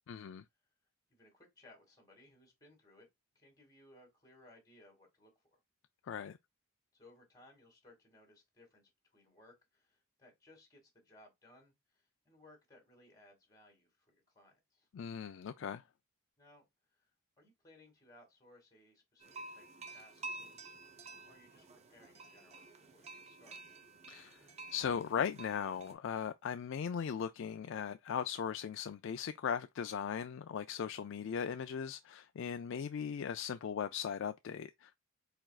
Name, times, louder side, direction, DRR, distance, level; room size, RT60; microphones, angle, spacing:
voice 1, 0.1-0.4 6.1-6.4 14.9-15.8 24.1-24.4 24.7-34.9, left 7 dB, 60° left, 0.3 m, -38 dB
voice 2, 1.1-3.1 3.3-5.6 6.9-14.9 16.4-16.6 16.9-17.1 17.4-23.6, left 1 dB, 15° left, 2.2 m, -63 dB
sound 1, 19.2-25.9, right 3 dB, 30° right, 0.8 m, -50 dB
4.6 x 4.4 x 2.3 m
head